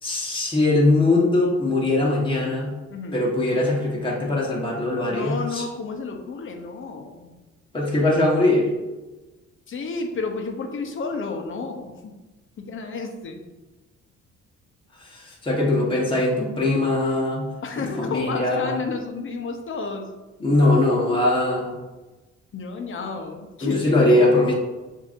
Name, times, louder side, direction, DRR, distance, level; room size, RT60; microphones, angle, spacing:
voice 1, 0.0-2.7 3.1-5.6 7.7-8.7 15.0-17.5 18.0-18.8 20.4-21.8 23.6-24.5, left 2 dB, 15° left, -3 dB, 1.2 m, -21 dB
voice 2, 2.9-3.2 5.1-7.3 9.7-12.1 12.6-13.5 17.6-20.1 22.5-24.4, left 4 dB, 40° left, 3 dB, 0.8 m, -31 dB
6.7 x 2.7 x 2.6 m, 1.1 s
cardioid pair, 90°, 30 cm